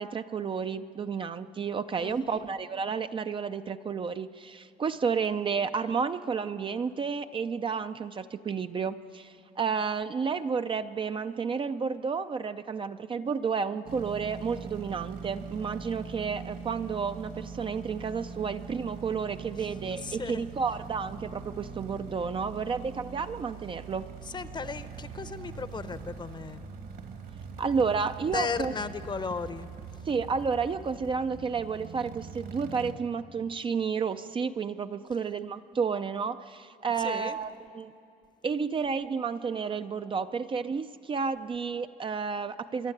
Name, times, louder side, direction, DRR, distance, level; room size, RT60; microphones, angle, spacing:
voice 1, 0.0-24.1 27.6-28.7 30.1-37.9 38.4-42.9, right 5 dB, 30° right, 9 dB, 0.5 m, -31 dB
voice 2, 2.0-2.4 19.5-19.7 20.0-20.5 24.2-26.6 28.3-29.7 37.0-37.4, left 5 dB, 25° left, 12 dB, 0.8 m, -35 dB
sound 1, 13.9-32.9, right 5 dB, 65° right, 2.0 m, -42 dB
25.0 x 11.5 x 9.8 m, 2.6 s
cardioid pair, 110°, 17 cm